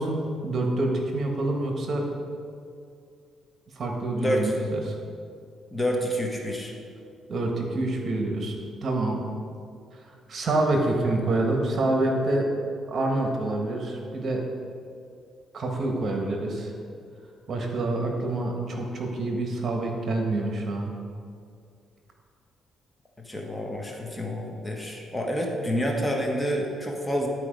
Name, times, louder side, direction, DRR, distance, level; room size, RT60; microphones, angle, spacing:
voice 1, 0.0-2.1 3.7-4.9 7.3-9.2 9.9-12.5 12.9-14.4 15.5-16.7 17.5-20.9, right 2 dB, 50° right, 1 dB, 1.4 m, -27 dB
voice 2, 4.2-4.6 5.7-6.7 23.3-27.3, equal, 10° left, 0 dB, 1.3 m, -28 dB
11.5 x 4.7 x 5.2 m, 2.3 s
cardioid pair, 90°, 0 cm